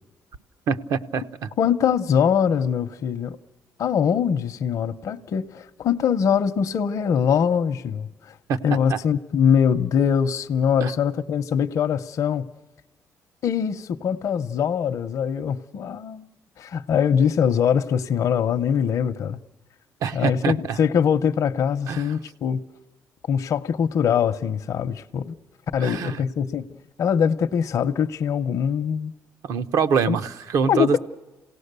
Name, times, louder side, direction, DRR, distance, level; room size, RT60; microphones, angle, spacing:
voice 1, 0.7-1.5 8.5-8.6 8.9-9.0 10.8-10.9 20.0-20.8 21.9-22.1 25.8-26.2 29.4-31.0, right 6 dB, 70° right, 0.8 m, -24 dB
voice 2, 1.6-3.4 3.8-8.4 8.6-12.5 13.4-16.3 16.6-19.4 20.1-22.6 23.3-25.3 25.7-26.7 27.0-29.1 30.1-30.2 30.7-31.0, left 7 dB, 65° left, 0.7 m, -22 dB
27.5 x 17.5 x 6.7 m
cardioid pair, 100°, 6 cm